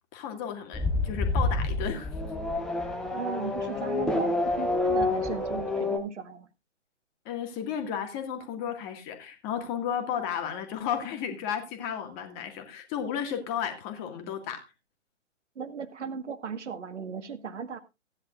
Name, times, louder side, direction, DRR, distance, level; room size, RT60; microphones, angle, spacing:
voice 1, 0.1-2.1 7.3-14.6, left 8 dB, 25° left, 2.0 m, -33 dB
Race car auto racing / Accelerating revving vroom, 0.7-6.0, left 2 dB, ahead, 0.8 m, -28 dB
voice 2, 3.0-6.5 15.5-17.8, right 6 dB, 65° right, 1.6 m, -37 dB
16.0 x 10.5 x 2.5 m
figure-of-eight pair, 135°, 38 cm